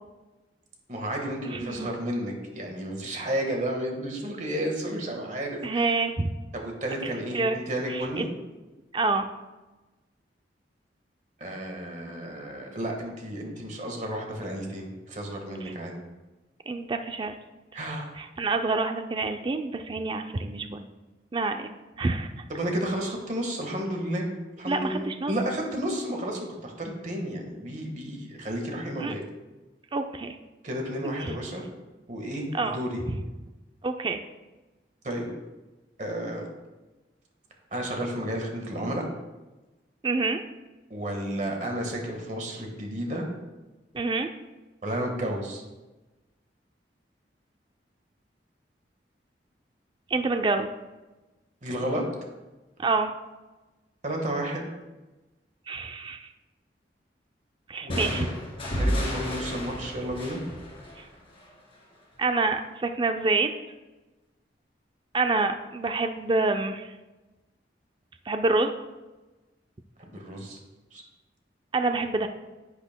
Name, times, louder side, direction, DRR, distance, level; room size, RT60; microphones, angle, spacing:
voice 1, 0.9-5.9 6.5-8.3 11.4-15.9 17.7-18.1 22.5-24.3 24.6-29.2 30.6-31.6 32.1-33.0 35.0-35.3 36.0-36.5 37.7-39.1 40.9-43.3 44.8-45.6 51.6-52.0 54.0-54.7 57.8-58.3 58.8-60.4 70.1-70.6 70.9-71.0, right 1 dB, 45° right, 2 dB, 1.5 m, -32 dB
voice 2, 1.5-1.9 5.6-6.3 7.3-7.6 7.9-8.2 8.9-9.3 15.6-15.7 16.7-17.4 18.1-20.9 21.3-21.7 22.0-22.3 24.7-25.3 29.0-29.1 29.9-30.4 31.2-31.3 32.5-32.8 33.1-33.2 33.8-34.2 40.0-40.4 43.9-44.3 50.1-50.7 52.8-53.1 55.7-56.3 57.7-58.3 61.0-61.1 62.2-63.5 65.1-66.9 68.3-68.7 71.7-72.3, right 3 dB, 25° right, 6 dB, 0.4 m, -27 dB
sound 1, 57.9-61.6, equal, 30° left, 2.0 m, -31 dB
10.5 x 8.2 x 2.2 m, 1.1 s
head